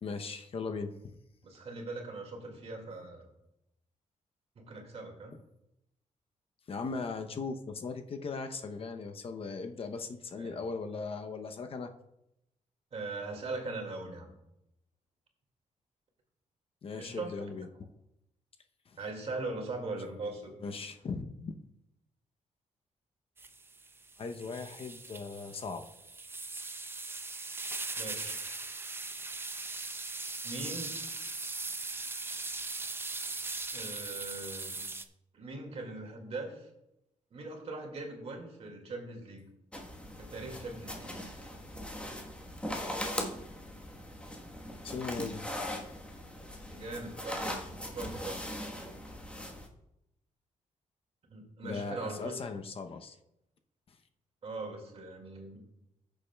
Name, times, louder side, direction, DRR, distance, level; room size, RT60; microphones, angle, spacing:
voice 1, 0.0-1.1 6.7-11.9 16.8-17.7 18.9-19.0 20.6-21.5 24.2-25.8 44.8-45.4 51.6-53.2, left 4 dB, 45° left, 6 dB, 0.7 m, -38 dB
voice 2, 1.4-3.3 4.6-5.3 10.4-10.6 12.9-14.3 17.0-17.4 19.0-20.5 28.0-28.4 30.4-30.9 33.7-34.8 35.3-36.7 37.3-39.4 40.2-41.1 46.7-48.4 51.3-52.4 54.4-55.6, right 2 dB, 55° right, 2 dB, 2.1 m, -40 dB
sound 1, 23.4-35.0, right 3 dB, 15° right, 0.5 m, -40 dB
sound 2, 39.7-49.7, left 1 dB, 10° left, 1.3 m, -40 dB
16.5 x 7.0 x 2.3 m, 0.85 s
cardioid pair, 110°, 13 cm